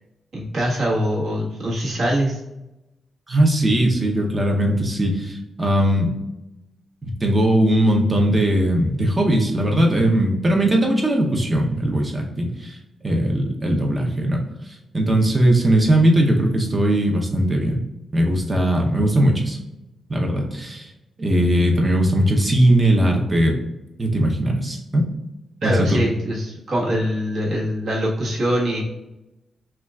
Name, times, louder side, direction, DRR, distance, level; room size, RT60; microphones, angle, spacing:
voice 1, 0.3-2.4 15.2-15.3 25.6-28.8, equal, 55° right, -5 dB, 1.4 m, -23 dB
voice 2, 3.3-6.1 7.0-12.8 13.0-17.8 18.1-19.6 20.1-20.9 21.2-23.6 24.0-25.0 25.6-26.0, right 1 dB, 20° right, 1 dB, 0.7 m, -19 dB
5.6 x 2.4 x 2.3 m, 0.94 s
wide cardioid pair, 140°, 0 cm